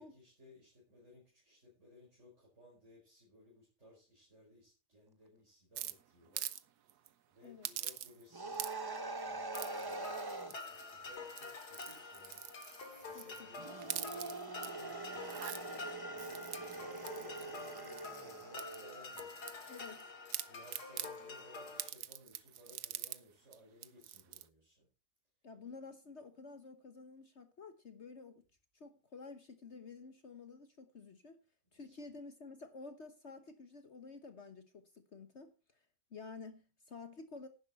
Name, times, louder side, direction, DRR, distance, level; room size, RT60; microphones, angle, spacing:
voice 1, 0.0-6.5 6.9-12.4 12.7-14.3 14.7-15.6 16.1-19.5 20.5-24.9 31.8-32.0, left 2 dB, 45° right, 5.7 m, -61 dB
sound 1, 5.8-6.6 6.9-7.1 7.6-8.3 8.5-9.0 9.5-9.9 10.5-10.9 11.3-13.4 13.8-14.7 15.1-15.6 16.2-18.2 18.6-20.0 20.3-21.1 21.8-23.2 23.5-23.6 23.8-24.4, right 12 dB, 80° right, 1.3 m, -44 dB
sound 2, 8.3-10.6 13.6-19.2, right 3 dB, 20° right, 0.7 m, -44 dB
sound 3, 9.5-21.9, left 3 dB, 75° left, 2.7 m, -48 dB
voice 2, 13.1-13.5 19.7-20.1 25.4-28.4 28.7-31.4 31.7-35.8 36.1-37.5, left 4 dB, 45° left, 1.3 m, -51 dB
11.0 x 10.5 x 4.4 m
omnidirectional pair, 1.7 m